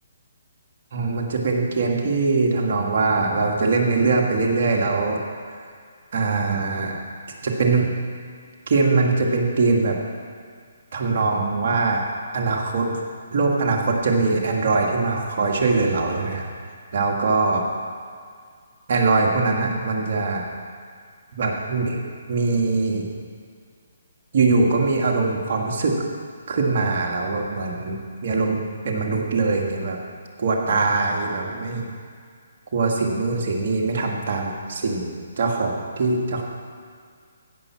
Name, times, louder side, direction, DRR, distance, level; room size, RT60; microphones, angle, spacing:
voice 1, 0.9-5.2 6.1-6.9 7.4-7.9 8.7-10.0 10.9-12.0 12.3-13.0 13.3-16.5 16.9-17.7 18.9-20.5 21.3-22.0 22.3-23.1 24.3-26.0 26.5-30.0 30.4-31.8 32.7-36.4, right 3 dB, 55° right, 0 dB, 1.9 m, -22 dB
15.5 x 5.9 x 5.8 m, 2.1 s
hypercardioid pair, 150°, 0 cm